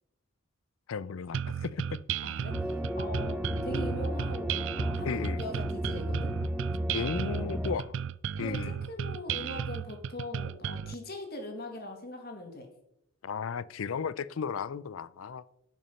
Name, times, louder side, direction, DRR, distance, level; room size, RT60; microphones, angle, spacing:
voice 1, 0.9-2.0 5.1-5.4 6.9-8.0 8.4-8.8 13.2-15.4, left 6 dB, 80° left, 0.5 m, -35 dB
sound 1, 1.3-10.9, right 8 dB, 65° right, 0.4 m, -35 dB
voice 2, 2.2-6.3 8.4-12.7, left 1 dB, 50° left, 2.0 m, -41 dB
sound 2, 2.5-7.8, equal, 5° right, 0.6 m, -33 dB
11.0 x 6.1 x 5.7 m
head